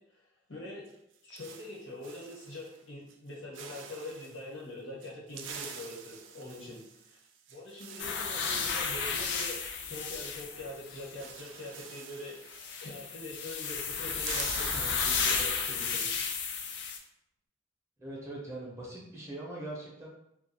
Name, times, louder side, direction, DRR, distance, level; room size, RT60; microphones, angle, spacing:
voice 1, 0.5-0.9 1.2-6.8 7.1-7.2 7.5-9.6 9.8-12.4 12.8-16.2, left 1 dB, 90° left, -6 dB, 1.1 m, -43 dB
sound 1, 0.9-2.8 3.1-3.3 3.5-4.4 5.0-10.5 10.7-10.8 11.1-13.5 13.7-16.1, right 6 dB, 70° right, 0.3 m, -47 dB
sound 2, 8.0-11.3 12.4-17.0, left 5 dB, 60° left, 0.3 m, -33 dB
voice 2, 18.0-20.1, right 1 dB, 15° right, -4 dB, 0.5 m, -41 dB
2.3 x 2.2 x 2.7 m, 0.80 s
head